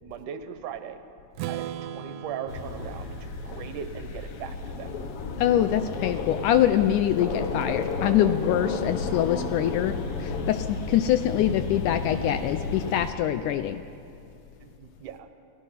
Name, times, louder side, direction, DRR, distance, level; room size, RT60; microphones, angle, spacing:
voice 1, 0.0-1.0 1.5-4.9 14.6-15.3, right 8 dB, 70° right, 8 dB, 2.4 m, -39 dB
Strum, 1.4-5.3, right 10 dB, 85° right, 2.4 m, -39 dB
sound 1, 2.5-13.1, left 4 dB, 60° left, 1.5 m, -33 dB
voice 2, 5.4-13.8, left 11 dB, 80° left, 10 dB, 2.0 m, -24 dB
29.0 x 16.0 x 5.7 m, 2.5 s
omnidirectional pair, 3.9 m